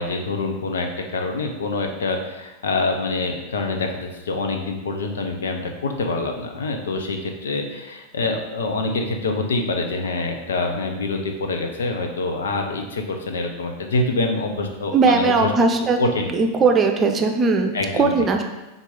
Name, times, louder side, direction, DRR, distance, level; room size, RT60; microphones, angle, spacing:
voice 1, 0.0-15.5 16.0-16.3 17.7-18.1, left 3 dB, 75° left, 3 dB, 0.8 m, -25 dB
voice 2, 14.9-16.0 16.3-18.4, right 4 dB, 25° right, 4 dB, 0.7 m, -19 dB
4.6 x 4.0 x 5.4 m, 1.1 s
figure-of-eight pair, 90°, 0 cm